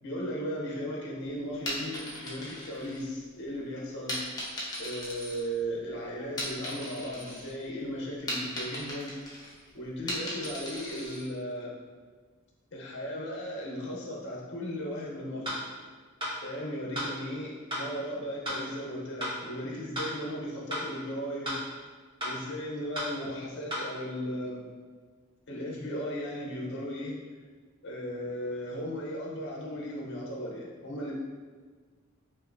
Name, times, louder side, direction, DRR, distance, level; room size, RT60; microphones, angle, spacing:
voice 1, 0.0-4.2 4.8-9.2 9.7-11.7 12.7-15.6 16.4-21.6 22.2-24.7 25.5-27.2 27.8-31.1, equal, 60° left, -2 dB, 0.7 m, -36 dB
sound 1, 1.5-3.4 4.1-5.9 6.2-7.5 7.8-11.3, left 1 dB, 20° left, 0.8 m, -37 dB
sound 2, 15.4-15.6 16.2-16.3 16.9-17.1 17.7-17.9 18.4-18.6 19.2-19.4 19.9-20.1 20.7-20.9 21.4-21.6 22.2-22.3 22.9-23.1 23.7-23.8, left 1 dB, 25° right, 1.1 m, -33 dB
5.4 x 2.6 x 2.5 m, 1.5 s
head